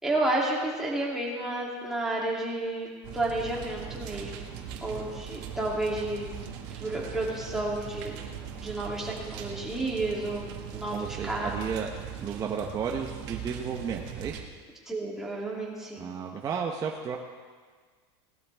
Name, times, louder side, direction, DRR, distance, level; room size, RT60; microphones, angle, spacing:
voice 1, 0.0-4.5 4.8-6.3 6.7-8.1 8.6-11.6 14.9-16.1, right 2 dB, 5° right, -5 dB, 2.8 m, -31 dB
sound 1, 3.0-14.4, right 8 dB, 60° right, 1.9 m, -40 dB
voice 2, 10.9-11.9 12.2-14.4 16.0-17.2, right 6 dB, 25° right, 1 dB, 0.9 m, -33 dB
18.5 x 12.0 x 3.5 m, 1.5 s
supercardioid pair, 150°, 15 cm